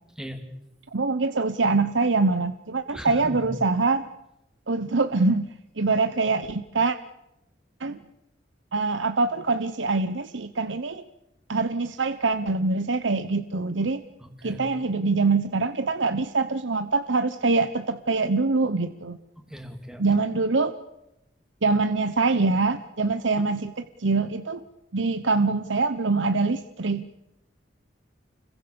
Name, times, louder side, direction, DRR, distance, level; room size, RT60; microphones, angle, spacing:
voice 1, 0.9-4.0 4.7-5.5 5.8-7.0 7.8-8.0 8.7-11.0 11.5-14.0 14.4-19.2 20.0-20.7 21.6-24.6 24.9-27.1, right 3 dB, 85° right, 10 dB, 1.0 m, -24 dB
voice 2, 2.9-3.5 14.2-14.6 19.5-20.0, equal, 5° right, 5 dB, 3.0 m, -37 dB
30.0 x 22.5 x 6.9 m, 0.90 s
head